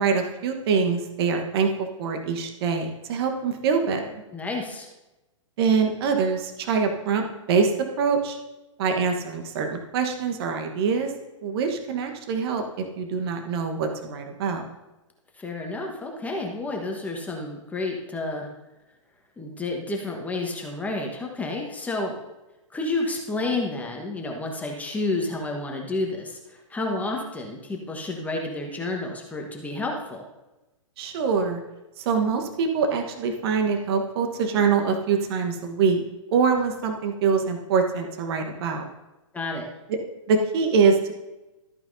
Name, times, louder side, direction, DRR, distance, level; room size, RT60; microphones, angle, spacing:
voice 1, 0.0-1.7 2.0-4.2 5.6-7.7 8.0-8.4 8.8-11.1 11.4-14.7 31.0-31.6 32.0-36.0 36.3-38.9 40.3-41.1, right 5 dB, 50° right, 4 dB, 1.3 m, -24 dB
voice 2, 4.3-4.9 15.3-18.5 19.4-22.1 22.7-30.3 39.3-39.7, left 2 dB, 10° left, 1 dB, 1.3 m, -30 dB
13.5 x 8.9 x 2.7 m, 1.0 s
hypercardioid pair, 120°, 17 cm